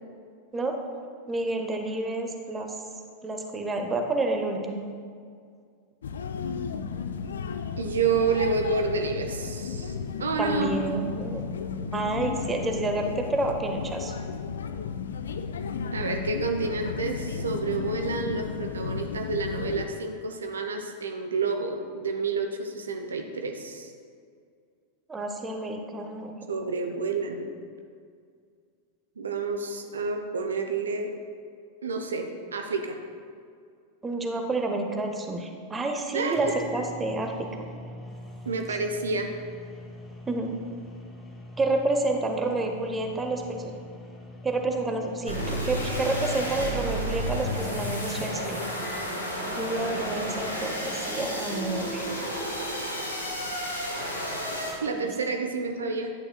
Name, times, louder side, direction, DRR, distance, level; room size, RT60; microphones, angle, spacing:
voice 1, 1.3-2.7 3.2-4.9 10.4-11.4 11.9-14.2 25.1-26.3 34.0-37.7 38.7-38.8 40.3-40.6 41.6-43.7 44.4-48.6 49.5-52.1 54.9-55.1, right 2 dB, 15° right, 3 dB, 0.8 m, -29 dB
sound 1, 6.0-19.9, left 6 dB, 65° left, 0.4 m, -34 dB
voice 2, 7.8-10.7 15.9-23.9 26.5-27.5 29.2-31.1 31.8-33.0 36.1-36.5 38.5-39.3 54.8-56.1, right 4 dB, 70° right, 4 dB, 0.6 m, -29 dB
sound 2, 36.0-36.1 36.3-49.1, left 1 dB, 10° left, 1.2 m, -44 dB
sound 3, 45.3-54.7, equal, 85° left, 1.5 m, -31 dB
11.0 x 8.9 x 2.2 m, 2.2 s
figure-of-eight pair, 90°, 0 cm